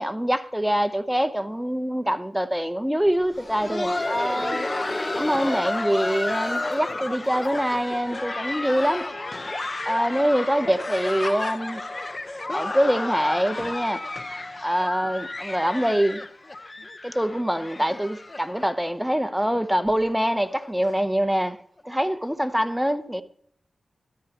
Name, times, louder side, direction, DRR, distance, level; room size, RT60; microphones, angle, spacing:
voice 1, 0.0-4.7 5.1-9.1 9.9-11.8 12.5-14.1 14.6-16.2 17.0-21.6 21.8-23.2, equal, 5° right, 0.9 m, -24 dB
Laughter, 3.2-18.9 19.2-19.3 19.9-20.0 20.5-20.7 21.8-21.9, left 2 dB, 35° left, 1.0 m, -31 dB
14.5 x 13.0 x 3.0 m
wide cardioid pair, 70°, 0 cm